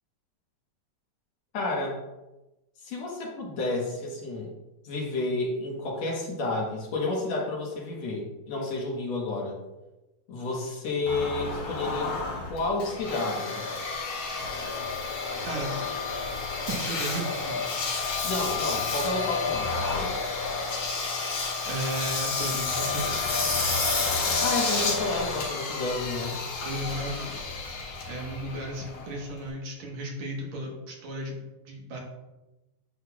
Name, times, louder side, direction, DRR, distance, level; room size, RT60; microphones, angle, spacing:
voice 1, 1.5-2.0 2.8-4.5 4.8-9.6 10.3-12.1 12.5-13.6 18.2-19.7 19.9-20.2 24.4-26.4, left 2 dB, 65° left, -2 dB, 2.3 m, -30 dB
Engine, 11.1-29.5, left 4 dB, 90° left, 3.3 m, -30 dB
voice 2, 15.4-15.8 16.7-17.6 21.2-23.3 26.6-27.5 27.8-32.0, right 1 dB, 70° right, -1 dB, 2.5 m, -35 dB
9.7 x 6.4 x 2.4 m, 1.0 s
omnidirectional pair, 3.4 m